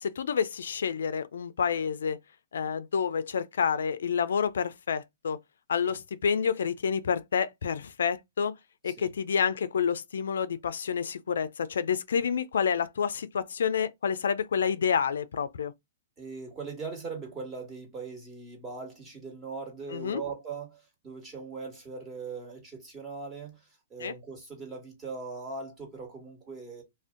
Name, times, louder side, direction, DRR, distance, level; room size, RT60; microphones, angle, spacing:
voice 1, 0.0-2.2 2.5-5.4 5.7-8.5 8.8-15.7 19.9-20.2 24.0-24.1, left 7 dB, 80° left, 0.4 m, -29 dB
voice 2, 16.2-26.8, right 4 dB, 20° right, 1.4 m, -40 dB
2.5 x 2.1 x 3.6 m
hypercardioid pair, 140°, 0 cm